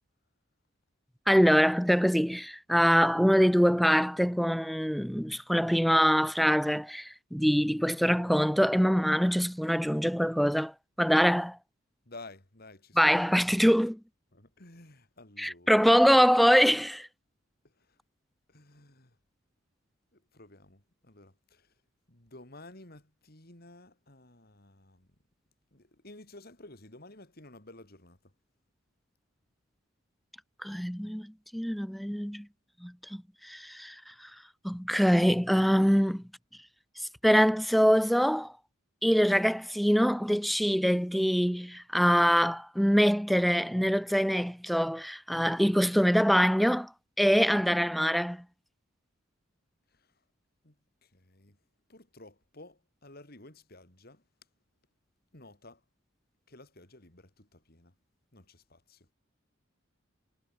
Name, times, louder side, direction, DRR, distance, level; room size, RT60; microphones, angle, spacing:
voice 1, 1.3-11.6 13.0-14.0 15.4-17.1 30.6-32.5 32.8-34.3 34.6-36.2 37.2-38.5 39.0-46.9 47.2-48.4, equal, ahead, 0.4 m, -24 dB
voice 2, 12.0-13.2 13.5-13.7 14.3-16.1 17.6-18.0 18.5-19.2 20.1-21.7 22.1-25.2 25.7-28.3 49.9-50.2 50.6-50.8 51.0-51.6 51.9-54.3 55.3-55.8 56.5-58.0 58.3-59.1, left 2 dB, 50° left, 3.9 m, -53 dB
head